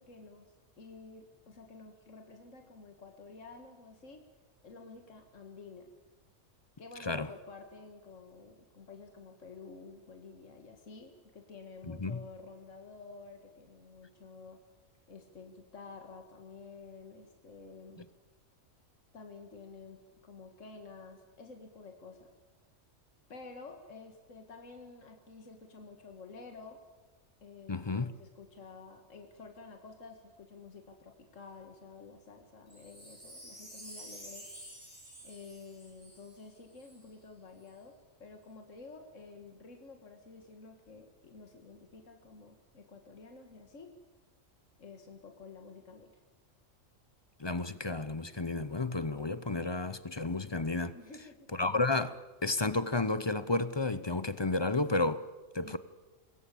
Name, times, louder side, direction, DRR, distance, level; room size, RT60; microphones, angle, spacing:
voice 1, 0.0-4.2 4.6-5.9 6.8-14.6 15.1-18.0 19.1-22.3 23.3-26.8 27.4-34.5 35.2-38.0 38.2-43.9 44.8-46.1 50.9-51.4 55.6-55.8, left 4 dB, 70° left, 2.2 m, -51 dB
voice 2, 11.9-12.2 27.7-28.1 47.4-51.0 51.5-52.1 52.4-55.2 55.5-55.8, left 3 dB, 25° left, 0.6 m, -32 dB
Wind chime, 32.7-37.0 37.6-37.7, right 1 dB, 25° right, 7.3 m, -50 dB
25.5 x 20.5 x 8.5 m
omnidirectional pair, 1.4 m